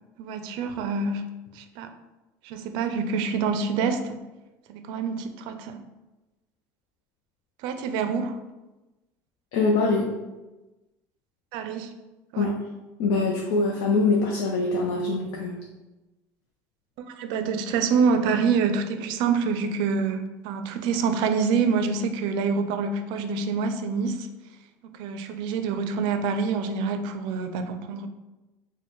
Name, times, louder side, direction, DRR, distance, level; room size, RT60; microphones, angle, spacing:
voice 1, 0.2-1.3 1.5-1.9 2.4-4.2 4.7-5.8 7.6-8.4 11.5-11.9 12.3-12.6 17.1-24.3 24.8-28.1, right 5 dB, 70° right, 8 dB, 0.4 m, -26 dB
voice 2, 9.5-10.1 12.4-12.6 13.0-15.6, left 3 dB, 85° left, -1 dB, 0.5 m, -23 dB
4.1 x 2.1 x 3.0 m, 1.1 s
cardioid pair, 130°, 8 cm